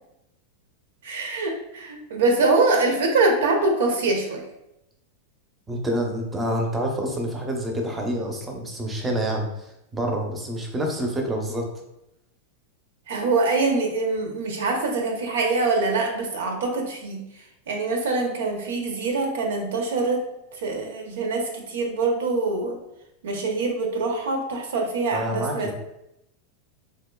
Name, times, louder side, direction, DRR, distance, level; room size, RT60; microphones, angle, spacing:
voice 1, 1.0-4.5 13.1-20.2 20.5-22.8 23.2-25.7, right 3 dB, 85° right, 2 dB, 0.8 m, -24 dB
voice 2, 5.7-11.7 25.1-25.7, equal, 15° right, 1 dB, 0.6 m, -27 dB
3.7 x 2.8 x 2.2 m, 0.83 s
supercardioid pair, 140°, 0 cm